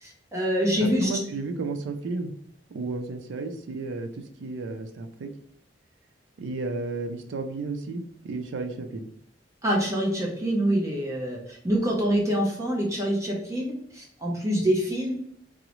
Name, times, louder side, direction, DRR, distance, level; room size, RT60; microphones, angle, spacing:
voice 1, 0.0-1.1 9.6-15.1, equal, 15° right, -2 dB, 0.6 m, -26 dB
voice 2, 0.8-2.3 2.7-5.3 6.4-9.1, right 3 dB, 90° right, 6 dB, 0.4 m, -33 dB
3.7 x 2.0 x 2.9 m, 0.68 s
head